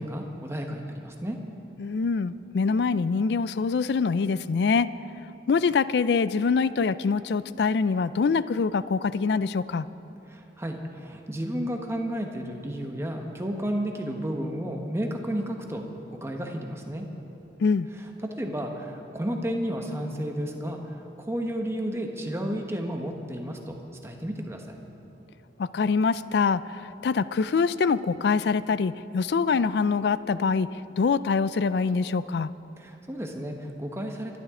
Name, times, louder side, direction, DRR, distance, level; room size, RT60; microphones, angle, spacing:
voice 1, 0.0-1.4 10.3-15.8 16.1-17.0 18.2-24.8 32.8-34.4, equal, 15° right, 2 dB, 1.1 m, -32 dB
voice 2, 1.8-4.9 5.5-9.9 17.6-17.9 25.6-32.5, left 5 dB, 65° left, 16 dB, 0.4 m, -24 dB
26.5 x 12.0 x 3.7 m, 3.0 s
head